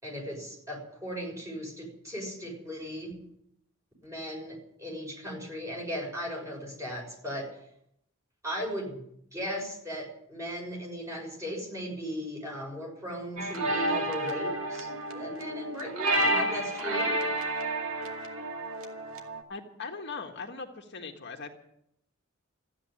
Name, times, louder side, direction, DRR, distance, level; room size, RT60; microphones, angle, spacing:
voice 1, 0.0-3.1 4.0-7.6 8.4-9.0 9.3-17.1, equal, 15° right, -1 dB, 6.3 m, -37 dB
sound 1, 13.4-19.4, right 1 dB, 75° right, 2.3 m, -30 dB
voice 2, 19.5-21.6, left 4 dB, 55° left, 2 dB, 1.6 m, -40 dB
14.0 x 9.5 x 10.0 m, 0.75 s
head